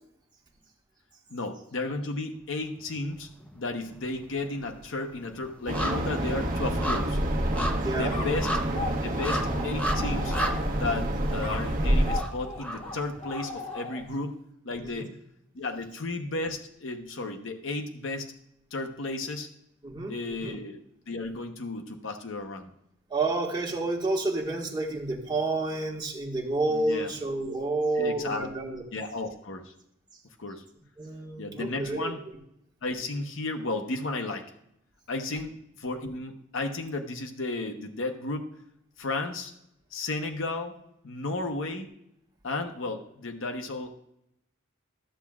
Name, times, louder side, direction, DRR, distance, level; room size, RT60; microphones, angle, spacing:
voice 1, 1.3-3.3 3.5-7.2 7.9-8.5 9.0-10.4 10.7-14.4 14.6-15.2 15.5-18.3 18.7-19.5 20.1-20.8 21.1-22.7 26.7-27.1 28.0-28.5 28.9-29.7 30.4-30.6 31.4-32.2 32.8-34.4 35.1-38.5 39.0-39.5 39.9-40.7 41.0-41.9 42.4-43.9, left 2 dB, 70° left, 5 dB, 0.9 m, -33 dB
sound 1, 2.8-3.6 3.8-13.8 14.2-14.3, equal, 5° left, 0.8 m, -35 dB
sound 2, 5.7-12.2, right 1 dB, 40° right, 1.1 m, -28 dB
voice 2, 7.8-8.2 14.8-15.1 19.8-20.6 23.1-28.8 31.0-32.1, right 2 dB, 20° right, -1 dB, 1.6 m, -30 dB
sound 3, 8.1-11.0 11.4-14.3, left 3 dB, 30° left, 1.1 m, -39 dB
13.5 x 7.2 x 2.4 m, 0.76 s
head